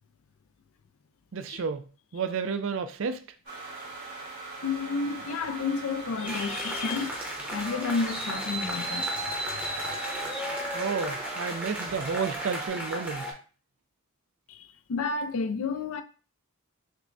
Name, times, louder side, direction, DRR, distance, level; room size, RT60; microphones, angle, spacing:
voice 1, 1.3-1.9 2.1-3.2 10.7-13.4, right 5 dB, 65° right, 0.4 m, -31 dB
sound 1, 3.5-12.7, right 3 dB, 85° right, 2.1 m, -41 dB
voice 2, 4.6-7.2 7.5-9.2 9.5-9.6 14.5-16.0, left 4 dB, 75° left, 0.4 m, -31 dB
sound 2, 6.2-13.3, right 1 dB, 5° right, 0.7 m, -34 dB
5.8 x 2.1 x 2.6 m
head